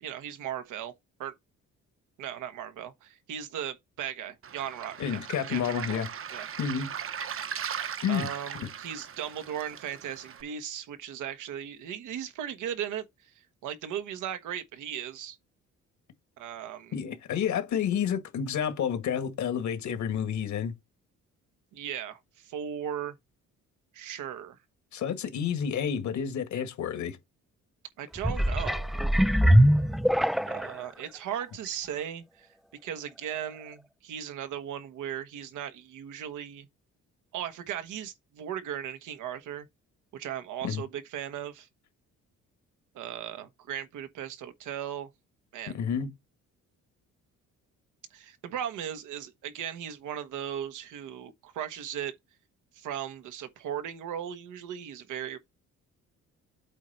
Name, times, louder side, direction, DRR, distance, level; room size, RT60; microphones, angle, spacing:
voice 1, 0.0-0.9 1.2-1.3 2.2-6.0 6.3-6.5 8.1-13.3 13.6-15.4 16.4-16.9 21.7-23.2 23.9-24.6 28.0-28.9 30.4-32.5 32.8-36.7 37.3-39.7 40.1-41.7 42.9-45.1 45.5-45.7 48.1-52.1 52.7-55.4, right 9 dB, 85° right, 1.2 m, -37 dB
Waves surf, 4.4-10.4, right 8 dB, 45° right, 0.8 m, -38 dB
voice 2, 5.0-6.1 6.6-6.9 8.0-8.3 8.5-8.7 16.9-20.7 24.9-27.2 40.6-40.8 45.7-46.1, left 8 dB, 70° left, 1.8 m, -30 dB
sound 1, 28.2-30.8 31.4-31.5, equal, ahead, 0.4 m, -22 dB
8.3 x 3.2 x 5.5 m
cardioid pair, 90°, 30 cm